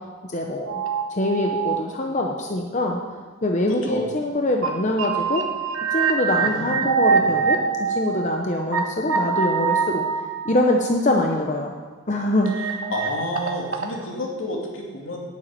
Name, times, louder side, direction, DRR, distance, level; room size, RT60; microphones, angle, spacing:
voice 1, 0.2-0.8 1.1-3.0 3.4-5.4 5.9-10.0 10.4-11.8 12.1-12.5, left 1 dB, 35° left, 1 dB, 0.8 m, -24 dB
sound 1, 0.7-1.8 2.4-2.5 4.3-4.4 4.6-4.7 5.0-8.8 9.1-10.9 12.4-13.9, right 6 dB, 85° right, 1.4 m, -24 dB
voice 2, 3.7-4.0 6.4-7.3 12.6-15.2, left 1 dB, 75° left, -1 dB, 2.4 m, -31 dB
9.3 x 7.1 x 8.7 m, 1.5 s
head